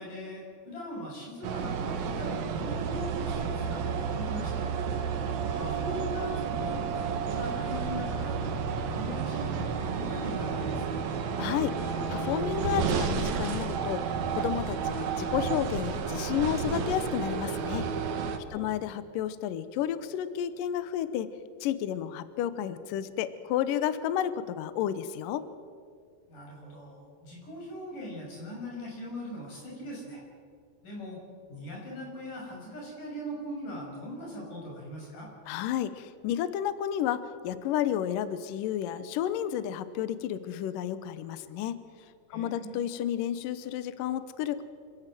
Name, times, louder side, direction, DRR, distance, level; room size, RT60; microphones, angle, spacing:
voice 1, 0.0-4.6 5.6-8.4 8.8-11.1 18.5-18.7 26.3-30.2 30.8-31.2 31.5-35.3 42.3-42.8, equal, 45° left, -2 dB, 7.6 m, -40 dB
sound 1, 1.4-18.4, right 6 dB, 70° right, 1.7 m, -31 dB
voice 2, 11.4-11.8 12.1-17.9 18.5-21.3 21.6-25.5 35.5-41.8 42.3-44.6, left 10 dB, 90° left, 13 dB, 1.9 m, -31 dB
26.0 x 17.0 x 7.7 m, 2.1 s
omnidirectional pair, 5.1 m